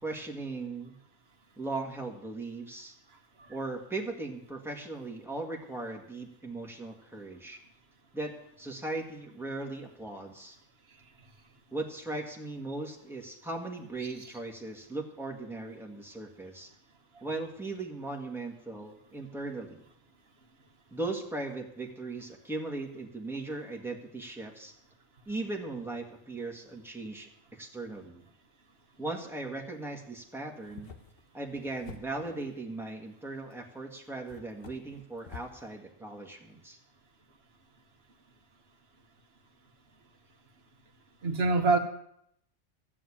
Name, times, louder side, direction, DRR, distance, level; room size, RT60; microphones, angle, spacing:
voice 1, 0.0-0.9 1.6-2.9 3.5-7.6 8.1-10.6 11.7-16.7 17.2-19.8 20.9-24.7 25.3-28.2 29.0-30.9 31.3-36.8, right 2 dB, ahead, 0 dB, 1.9 m, -38 dB
sound 1, 30.5-32.5 33.5-33.6 34.3-35.6, left 4 dB, 50° left, 1.4 m, -49 dB
voice 2, 41.2-41.8, right 3 dB, 55° right, 5 dB, 1.6 m, -25 dB
14.0 x 7.5 x 8.7 m, 0.73 s
omnidirectional pair, 1.3 m